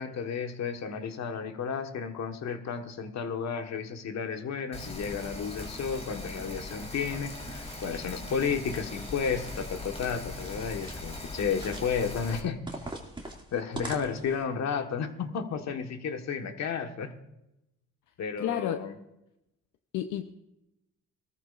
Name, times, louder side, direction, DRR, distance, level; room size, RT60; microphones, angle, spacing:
voice 1, 0.0-12.6 13.5-17.2 18.2-19.0, left 6 dB, 65° left, 6 dB, 1.4 m, -32 dB
Rain, 4.7-12.4, left 2 dB, 20° left, 2.6 m, -40 dB
sound 1, 7.4-8.0 8.5-9.7 10.3-11.2 11.5-12.1 12.7-14.4, right 2 dB, 15° right, 2.2 m, -44 dB
voice 2, 18.4-18.8 19.9-20.2, left 11 dB, 80° left, 7 dB, 0.7 m, -31 dB
20.5 x 13.5 x 2.5 m, 0.89 s
cardioid pair, 90°, 30 cm